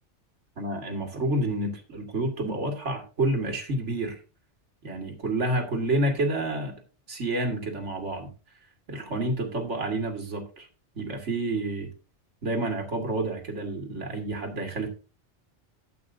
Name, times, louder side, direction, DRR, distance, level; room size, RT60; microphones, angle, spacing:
voice 1, 0.6-4.2 4.8-6.7 7.1-8.3 8.9-10.7 11.0-11.9 12.4-14.9, right 2 dB, 80° right, 3 dB, 2.3 m, -29 dB
13.0 x 8.6 x 2.7 m, 0.34 s
omnidirectional pair, 1.2 m